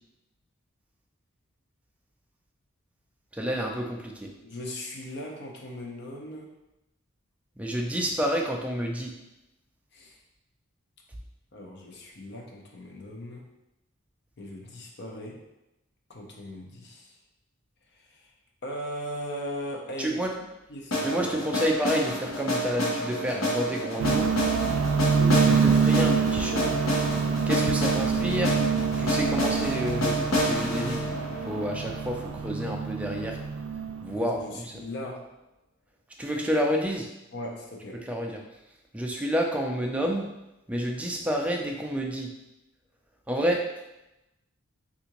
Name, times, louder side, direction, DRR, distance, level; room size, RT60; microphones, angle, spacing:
voice 1, 3.3-4.3 7.6-9.1 20.0-20.3 21.0-24.3 25.2-26.8 27.5-28.5 29.0-31.1 31.5-33.4 34.0-34.7 36.2-37.1 38.1-38.4 38.9-40.3 40.7-42.3 43.3-43.6, equal, 5° right, 0 dB, 0.3 m, -29 dB
voice 2, 4.4-6.5 9.9-10.2 11.5-13.5 14.4-15.4 16.1-17.2 17.9-18.3 18.6-20.4 20.7-21.2 34.1-35.3 37.3-38.1, left 1 dB, 55° left, 0 dB, 0.6 m, -39 dB
sound 1, 20.9-32.8, equal, 85° left, 0.8 m, -29 dB
sound 2, 24.0-34.2, right 5 dB, 85° right, 0.3 m, -26 dB
3.6 x 2.5 x 2.9 m, 0.94 s
head